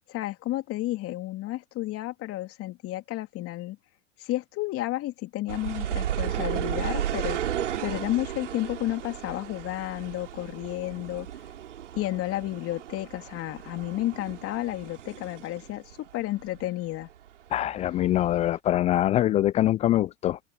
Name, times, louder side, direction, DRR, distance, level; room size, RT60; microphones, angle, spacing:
voice 1, 0.1-3.8 4.2-11.3 11.9-17.1, left 16 dB, 40° left, 2.9 m, -32 dB
sound 1, 5.5-16.7 16.9-18.0 18.5-18.6, right 10 dB, 80° right, 2.9 m, -34 dB
voice 2, 17.5-20.4, left 13 dB, 20° left, 0.3 m, -24 dB
hypercardioid pair, 100°, 36 cm